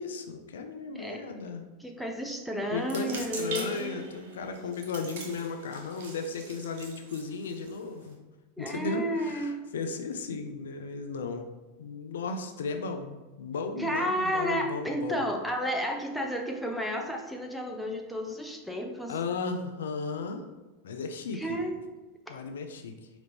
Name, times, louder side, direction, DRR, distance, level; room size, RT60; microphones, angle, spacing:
voice 1, 0.0-1.6 2.7-8.2 8.6-11.5 11.8-15.2 19.1-20.4 20.8-21.6 22.3-22.9, left 4 dB, 80° left, 6 dB, 0.5 m, -35 dB
voice 2, 1.8-4.1 8.6-9.6 13.8-19.1 21.3-21.7, equal, ahead, 1 dB, 0.7 m, -32 dB
sound 1, 2.8-8.1, right 4 dB, 70° right, 0.9 m, -43 dB
4.9 x 3.0 x 3.4 m, 1.2 s
hypercardioid pair, 105°, 0 cm